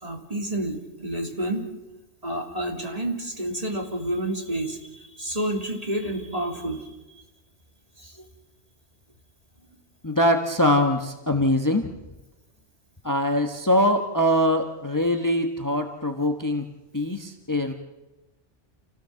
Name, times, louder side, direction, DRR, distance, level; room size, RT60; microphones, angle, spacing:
voice 1, 0.0-1.7 2.2-6.9 8.0-8.2, right 1 dB, 30° right, 2 dB, 3.3 m, -29 dB
voice 2, 10.0-11.9 13.0-16.7 16.9-17.7, left 1 dB, 15° left, 5 dB, 1.4 m, -23 dB
28.5 x 16.5 x 7.7 m, 1.0 s
omnidirectional pair, 1.3 m